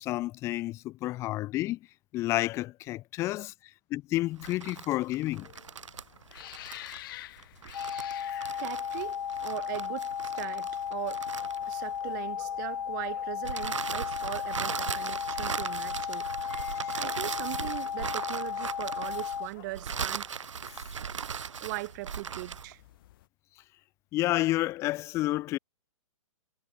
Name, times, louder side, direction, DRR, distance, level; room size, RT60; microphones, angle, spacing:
voice 1, 0.0-1.8 2.1-3.5 3.9-5.5 16.5-17.0 24.1-25.6, left 17 dB, 15° left, 0.5 m, -30 dB
sound 1, 4.3-12.1 13.4-22.7, right 7 dB, 60° right, 3.4 m, -38 dB
sound 2, 5.4-23.3, left 16 dB, 40° left, 4.6 m, -52 dB
sound 3, 7.7-19.5, left 8 dB, 55° left, 3.2 m, -35 dB
voice 2, 8.6-11.2 11.7-16.3 16.9-20.3 21.6-22.8, right 22 dB, 35° right, 1.5 m, -39 dB
figure-of-eight pair, 120°, 17 cm